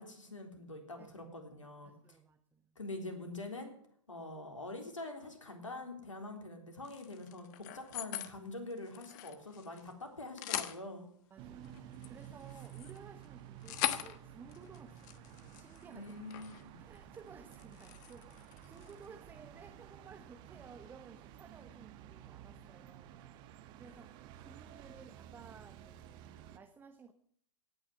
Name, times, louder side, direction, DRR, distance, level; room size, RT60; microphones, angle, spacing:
voice 1, 0.0-2.2 2.8-3.7 4.1-11.1 15.9-16.8, left 2 dB, 80° left, 5 dB, 3.6 m, -45 dB
voice 2, 1.0-1.3 1.8-2.8 11.3-16.1 16.8-23.2 23.8-26.3 26.5-27.1, right 5 dB, 15° right, 7 dB, 1.0 m, -56 dB
sound 1, 6.8-8.3 8.7-9.9 10.2-10.8 11.6-16.6 17.0-17.2 17.5-19.1, left 13 dB, 35° left, 1.2 m, -42 dB
sound 2, 11.4-26.6, right 10 dB, 30° right, 1.2 m, -53 dB
18.0 x 6.4 x 9.6 m, 0.63 s
figure-of-eight pair, 120°, 16 cm